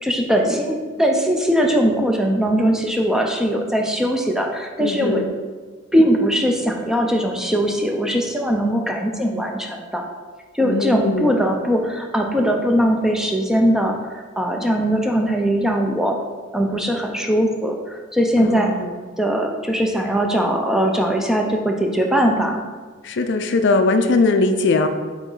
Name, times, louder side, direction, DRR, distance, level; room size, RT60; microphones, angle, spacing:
voice 1, 0.0-5.2 5.9-10.0 10.5-16.2 16.5-18.7 19.2-22.6, equal, ahead, 1 dB, 0.5 m, -20 dB
voice 2, 4.8-5.3 10.6-11.4 18.4-19.0 23.0-24.9, left 3 dB, 55° left, 7 dB, 0.4 m, -20 dB
8.2 x 3.0 x 3.9 m, 1.5 s
head